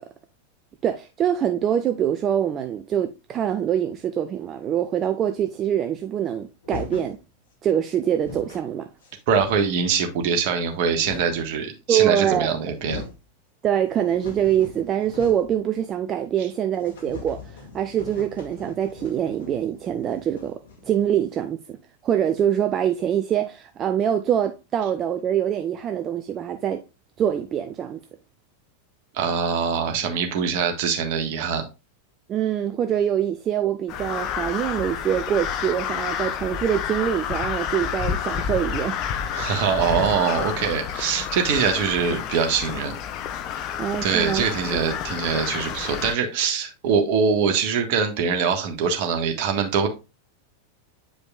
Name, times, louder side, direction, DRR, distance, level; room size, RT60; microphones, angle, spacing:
voice 1, 0.8-7.2 7.6-8.9 11.9-12.5 13.6-21.8 22.0-26.8 27.2-28.0 32.3-39.0 43.8-44.4, right 9 dB, 30° right, 0.5 m, -24 dB
sound 1, 6.6-7.2 7.8-7.9 8.1-8.7 9.0-9.9 10.6-11.5 12.3-12.4 12.6-13.2 13.7-15.6 15.9-16.0 16.3-16.4 16.8-21.3, left 4 dB, 60° left, 2.0 m, -40 dB
voice 2, 9.3-13.0 29.1-31.6 39.3-42.9 44.0-49.9, right 6 dB, 45° right, 1.5 m, -23 dB
Crow, 33.9-46.1, left 8 dB, 35° left, 0.7 m, -29 dB
8.6 x 5.1 x 2.4 m
figure-of-eight pair, 90°, 0 cm